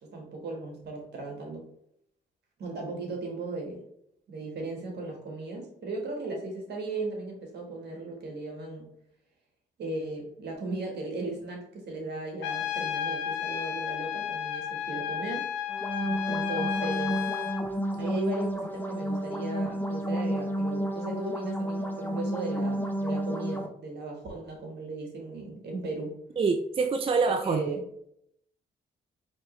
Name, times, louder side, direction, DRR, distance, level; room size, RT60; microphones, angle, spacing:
voice 1, 0.0-1.6 2.6-3.8 4.3-8.9 9.8-15.5 16.3-17.2 18.0-26.2 27.2-27.8, right 2 dB, 65° right, 1 dB, 1.5 m, -36 dB
Trumpet, 12.4-17.6, left 9 dB, 85° left, 0.5 m, -32 dB
sound 1, 15.7-23.7, right 1 dB, 10° left, 0.8 m, -31 dB
voice 2, 26.4-27.6, right 4 dB, 30° right, 6 dB, 0.4 m, -26 dB
4.4 x 3.1 x 3.1 m, 0.72 s
supercardioid pair, 60°, 18 cm